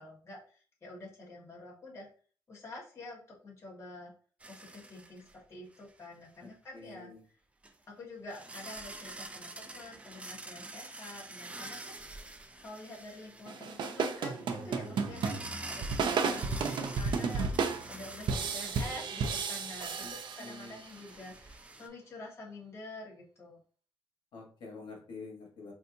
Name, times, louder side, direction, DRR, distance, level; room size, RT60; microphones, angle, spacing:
voice 1, 0.0-2.1 2.5-4.1 4.4-7.1 7.9-12.3 12.6-23.6, left 2 dB, 35° left, -5 dB, 1.4 m, -48 dB
sound 1, 4.4-5.4 5.7-5.9 7.6-7.7 8.3-21.9, right 2 dB, 15° right, 0.4 m, -47 dB
voice 2, 6.4-7.2 16.0-16.4 20.0-20.1 20.4-20.8 24.3-25.7, left 3 dB, 80° left, -1 dB, 1.3 m, -48 dB
sound 2, 13.5-20.9, right 5 dB, 70° right, 0.5 m, -33 dB
4.3 x 2.7 x 2.6 m, 0.41 s
cardioid pair, 125°, 8 cm